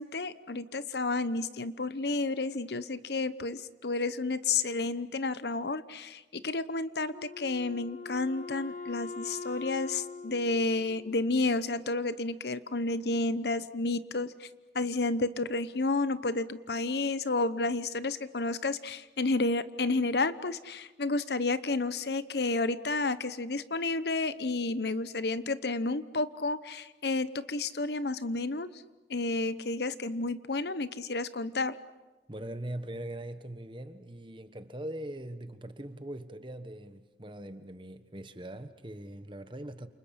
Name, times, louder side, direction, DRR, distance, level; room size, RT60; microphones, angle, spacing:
voice 1, 0.0-14.5 14.7-28.7 29.1-31.8, left 3 dB, 70° left, 1.0 m, -31 dB
Wind instrument woodwind instrument, 7.1-11.6, left 4 dB, 45° left, 0.8 m, -43 dB
voice 2, 32.3-39.9, right 1 dB, 25° right, 1.2 m, -41 dB
29.5 x 28.5 x 5.8 m
head